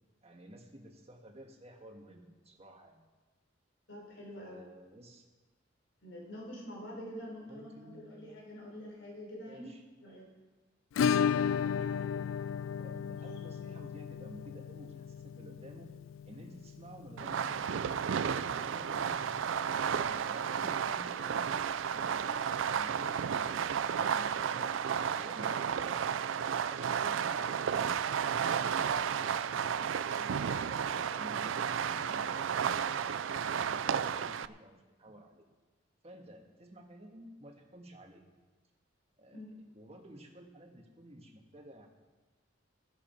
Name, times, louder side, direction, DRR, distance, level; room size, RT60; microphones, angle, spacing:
voice 1, 0.2-3.0 4.4-5.2 7.5-8.3 9.4-9.8 11.1-12.3 12.8-15.9 16.2-17.7 18.4-26.2 26.7-27.9 28.4-35.5 36.0-38.2 39.2-39.4 39.7-41.9, right 1 dB, 30° right, 2 dB, 1.7 m, -52 dB
voice 2, 3.9-4.6 6.0-9.7 10.0-10.3 39.3-39.5, equal, 70° left, -2 dB, 4.4 m, -46 dB
Acoustic guitar / Strum, 11.0-19.6 19.8-19.9 20.2-20.3 20.7-20.8 22.8-22.9 24.0-24.1, left 7 dB, 90° left, 0.3 m, -35 dB
Fireworks, 17.2-34.5, right 7 dB, 80° right, 0.4 m, -32 dB
15.5 x 11.0 x 4.5 m, 1.2 s
head